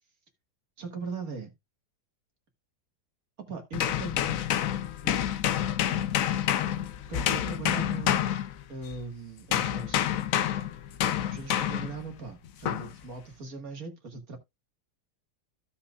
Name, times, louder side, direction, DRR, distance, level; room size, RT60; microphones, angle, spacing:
voice 1, 0.8-1.5 3.5-4.6 5.0-5.2 7.1-8.2 8.7-10.1 11.3-14.4, right 4 dB, 60° right, 2.1 m, -39 dB
sound 1, 3.7-9.0 9.5-12.0 12.7-12.9, left 10 dB, 65° left, 1.0 m, -28 dB
15.5 x 5.7 x 2.4 m
omnidirectional pair, 1.8 m